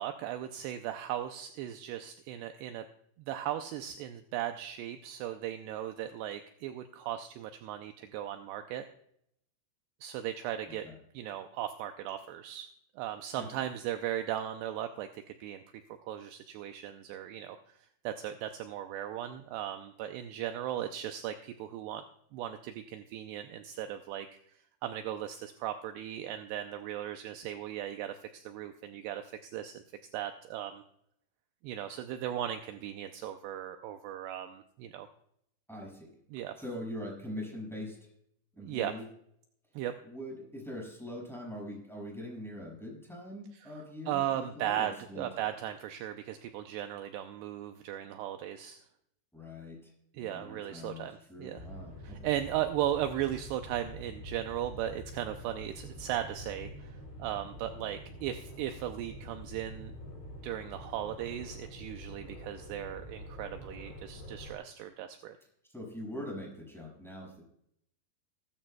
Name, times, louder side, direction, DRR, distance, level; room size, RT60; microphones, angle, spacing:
voice 1, 0.0-2.9 3.2-8.9 10.0-10.9 11.1-15.6 16.0-17.6 18.0-22.0 22.3-24.3 24.8-29.8 30.1-30.8 31.6-35.1 36.3-36.5 38.6-38.9 39.8-40.0 44.1-48.8 50.1-51.6 52.0-59.9 60.4-65.4, right 11 dB, 80° right, 7 dB, 2.5 m, -37 dB
voice 2, 10.7-11.0 13.3-13.5 35.7-36.1 36.6-38.0 38.5-39.1 40.0-45.3 49.3-51.0 51.3-52.3 65.7-67.4, left 1 dB, ahead, -3 dB, 5.8 m, -42 dB
sound 1, 51.5-64.5, equal, 85° left, 7.4 m, -46 dB
19.5 x 13.0 x 2.3 m, 0.72 s
omnidirectional pair, 5.3 m